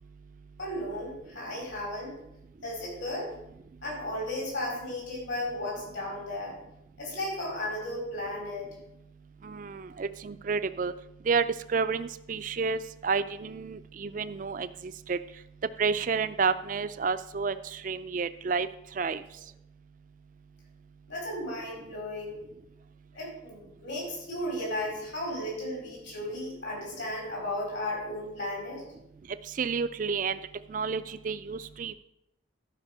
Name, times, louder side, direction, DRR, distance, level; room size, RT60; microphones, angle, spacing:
voice 1, 0.6-2.2 2.6-3.3 3.8-6.6 7.0-8.7 21.1-22.4 23.1-28.8, left 1 dB, 70° left, -2 dB, 4.7 m, -35 dB
voice 2, 9.4-10.9 11.3-15.2 15.8-18.7 19.0-19.2 29.6-30.4 30.7-31.9, right 5 dB, 40° right, 12 dB, 0.4 m, -30 dB
11.5 x 5.2 x 6.1 m, 0.82 s
head